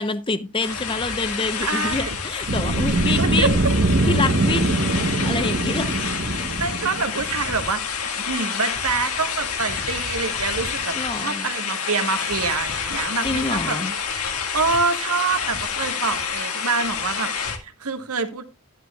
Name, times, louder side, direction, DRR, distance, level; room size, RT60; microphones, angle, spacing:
voice 1, 0.0-3.6 4.1-6.1 10.9-11.5 13.2-13.9, left 3 dB, 25° left, 0.8 m, -27 dB
sound 1, 0.6-17.6, left 6 dB, 85° left, 1.8 m, -28 dB
voice 2, 1.6-2.1 3.2-3.5 6.6-7.8 8.1-13.8 14.5-18.4, right 4 dB, 90° right, 1.3 m, -26 dB
sound 2, 2.5-7.4, right 2 dB, 60° right, 0.9 m, -22 dB
13.0 x 10.5 x 2.3 m
head